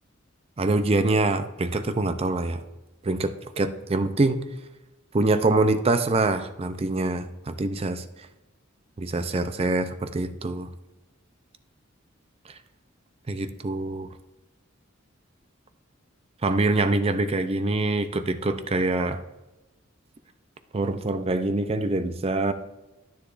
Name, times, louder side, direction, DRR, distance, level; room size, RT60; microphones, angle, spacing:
voice 1, 0.6-2.6 3.0-4.4 5.1-8.0 9.0-10.7 13.3-14.1 16.4-19.2 20.7-22.5, right 2 dB, 30° right, 10 dB, 0.5 m, -25 dB
10.0 x 9.7 x 2.5 m, 1.1 s
head